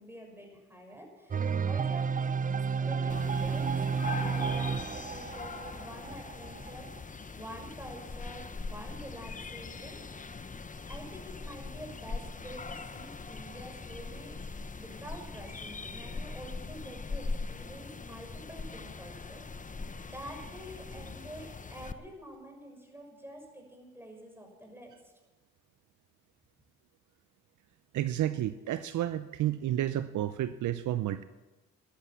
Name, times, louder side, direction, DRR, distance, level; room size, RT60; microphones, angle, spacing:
voice 1, 0.0-2.4 2.8-3.6 4.1-7.0 7.3-10.3 10.9-14.4 14.7-25.1, right 1 dB, 5° right, 2 dB, 6.2 m, -47 dB
sound 1, 1.3-7.0, right 5 dB, 25° right, 0.5 m, -31 dB
sound 2, 3.1-21.9, left 4 dB, 25° left, 1.0 m, -41 dB
voice 2, 27.9-31.2, right 12 dB, 70° right, 13 dB, 0.7 m, -31 dB
14.5 x 11.0 x 7.4 m, 1.2 s
supercardioid pair, 60°, 31 cm